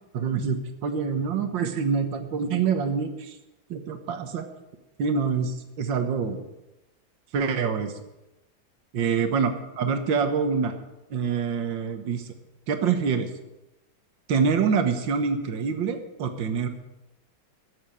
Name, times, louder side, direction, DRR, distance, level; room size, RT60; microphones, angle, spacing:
voice 1, 0.1-3.4 3.7-4.5 5.0-6.4 7.3-7.9 8.9-10.7 11.1-12.2 12.7-13.3 14.3-16.7, right 6 dB, 70° right, 7 dB, 2.0 m, -26 dB
14.0 x 7.5 x 9.0 m, 0.96 s
omnidirectional pair, 2.1 m